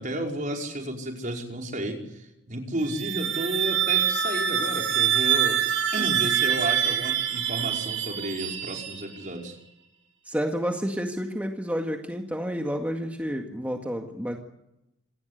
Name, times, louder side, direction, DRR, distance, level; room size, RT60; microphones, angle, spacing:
voice 1, 0.0-5.6 5.9-9.6, right 1 dB, 45° right, 1 dB, 5.2 m, -32 dB
sound 1, 2.8-9.4, right 9 dB, 80° right, 5.8 m, -25 dB
voice 2, 10.3-14.4, equal, 10° right, 2 dB, 1.9 m, -30 dB
27.0 x 18.5 x 8.3 m, 0.86 s
head